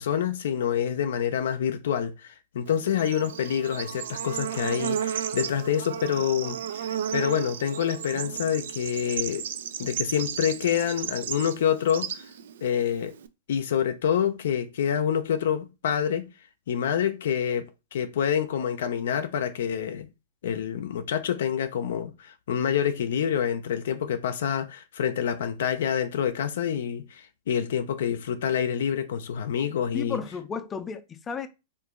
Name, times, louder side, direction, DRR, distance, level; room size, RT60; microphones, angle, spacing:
voice 1, 0.0-9.5 9.8-12.2 12.6-13.1 13.5-16.3 16.7-20.1 20.4-30.2, left 8 dB, 75° left, 0.5 m, -27 dB
Bird / Insect, 2.7-13.3, right 9 dB, 80° right, 0.4 m, -34 dB
voice 2, 29.9-31.5, left 6 dB, 20° left, 0.5 m, -33 dB
2.9 x 2.5 x 3.7 m
hypercardioid pair, 145°, 0 cm